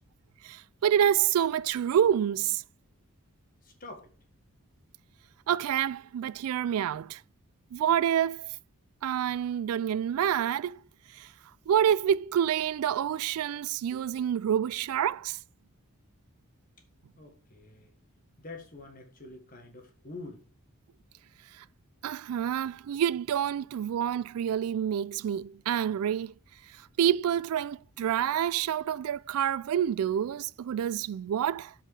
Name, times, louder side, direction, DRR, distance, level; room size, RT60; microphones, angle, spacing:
voice 1, 0.4-2.6 5.5-7.2 7.7-8.5 9.0-10.8 11.1-11.3 11.7-15.4 21.6-21.7 22.0-26.3 27.0-31.7, right 9 dB, 80° right, 0.3 m, -27 dB
voice 2, 17.2-17.9 18.4-20.4, left 2 dB, 40° left, 1.5 m, -46 dB
7.9 x 4.7 x 4.7 m
head